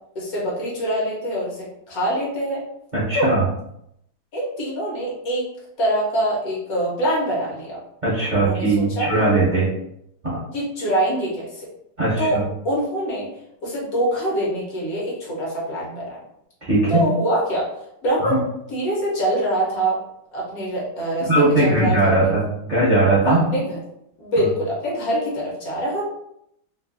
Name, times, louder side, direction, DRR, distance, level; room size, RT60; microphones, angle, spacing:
voice 1, 0.1-2.7 3.1-3.3 4.3-5.5 5.8-7.8 8.3-9.1 10.5-11.7 12.2-13.3 13.6-16.2 16.9-17.7 18.0-18.4 18.7-20.0 20.3-21.3 21.6-22.3 23.2-23.8 24.2-26.1, right 1 dB, 65° left, -4 dB, 1.3 m, -24 dB
voice 2, 2.9-3.4 8.0-9.7 10.2-10.4 12.0-12.4 16.6-17.0 18.2-18.4 21.3-23.4, right 2 dB, 35° right, -8 dB, 0.8 m, -19 dB
3.1 x 2.5 x 2.5 m, 0.77 s
omnidirectional pair, 1.8 m